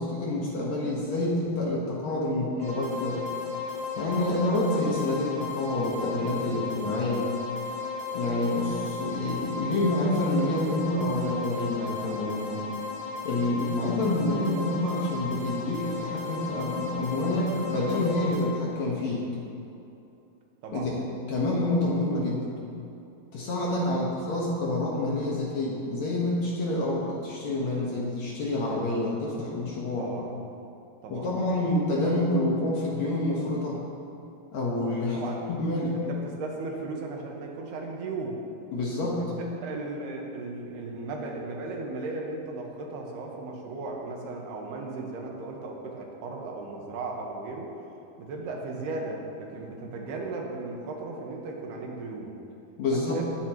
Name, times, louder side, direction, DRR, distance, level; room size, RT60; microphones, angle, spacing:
voice 1, 0.0-3.2 4.0-7.3 8.1-12.6 13.2-19.3 20.7-21.0 21.3-22.5 23.3-30.1 31.1-33.9 34.5-35.2 35.5-36.1 38.7-39.3 52.8-53.2, left 1 dB, 60° left, -4 dB, 2.2 m, -28 dB
sound 1, 2.6-18.4, left 5 dB, 35° left, 1.5 m, -35 dB
voice 2, 20.6-20.9 23.9-24.1 30.0-30.3 31.0-31.5 32.0-32.1 35.1-35.5 36.1-38.4 39.2-47.7 48.2-52.3 52.9-53.2, right 3 dB, 90° right, -1 dB, 3.4 m, -36 dB
20.0 x 9.1 x 3.0 m, 2.7 s
omnidirectional pair, 4.5 m